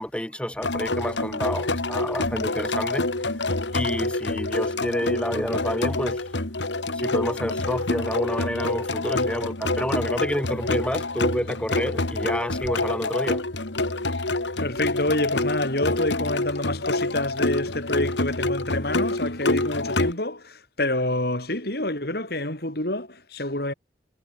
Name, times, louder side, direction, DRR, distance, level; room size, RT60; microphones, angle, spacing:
voice 1, 0.0-3.1 3.7-6.3 6.9-13.4, equal, 5° left, 2.1 m, -29 dB
sound 1, 0.6-20.1, left 2 dB, 80° left, 2.5 m, -27 dB
voice 2, 14.6-23.7, left 1 dB, 55° left, 5.6 m, -27 dB
head